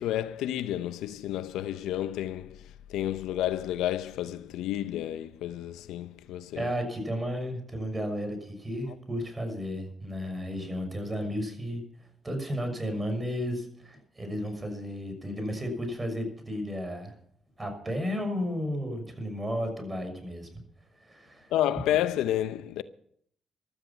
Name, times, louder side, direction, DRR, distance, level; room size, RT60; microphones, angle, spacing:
voice 1, 0.0-6.7 21.5-22.8, left 12 dB, 90° left, 0.6 m, -30 dB
voice 2, 6.5-17.1 17.6-20.5 21.0-21.5, equal, 20° right, 6.0 m, -33 dB
16.0 x 12.5 x 5.7 m
cardioid pair, 75°, 0 cm